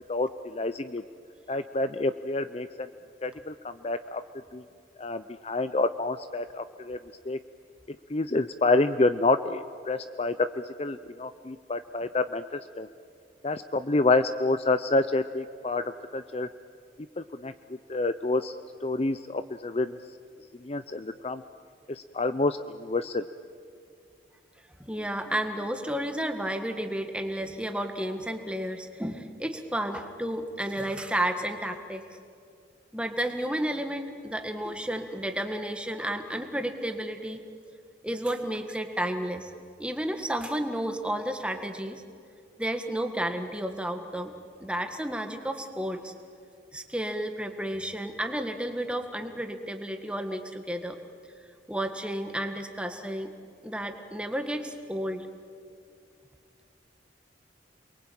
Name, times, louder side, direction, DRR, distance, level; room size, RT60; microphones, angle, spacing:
voice 1, 0.1-1.0 1.5-2.9 3.2-4.2 4.5-4.6 5.0-7.0 7.3-7.4 8.1-12.9 13.4-16.5 17.2-17.5 17.9-18.6 18.8-20.0 20.6-21.4 21.9-23.2, left 2 dB, 35° left, 11 dB, 0.6 m, -28 dB
voice 2, 24.8-32.1 32.9-37.4 38.0-39.5 39.8-42.0 42.6-44.3 44.6-46.1 46.7-51.0 51.7-53.3 53.6-55.3, right 1 dB, 5° right, 5 dB, 1.7 m, -32 dB
29.0 x 22.5 x 8.8 m, 2.4 s
head